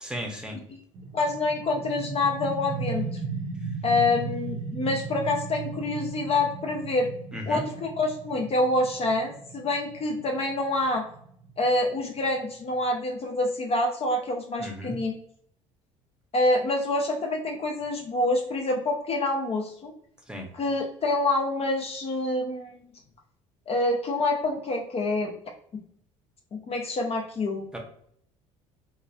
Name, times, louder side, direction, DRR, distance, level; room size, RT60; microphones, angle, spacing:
voice 1, 0.0-0.6 7.3-7.6 14.6-15.0 20.3-20.5 27.7-27.8, equal, 5° right, 2 dB, 0.7 m, -35 dB
sound 1, 0.9-12.4, right 5 dB, 50° right, 0.6 m, -37 dB
voice 2, 1.1-3.1 3.8-7.1 7.5-11.0 11.6-15.1 16.3-19.9 20.5-22.8 23.7-25.3 26.5-27.7, left 2 dB, 40° left, 2 dB, 0.5 m, -26 dB
2.9 x 2.3 x 2.3 m, 0.65 s
hypercardioid pair, 60°, 16 cm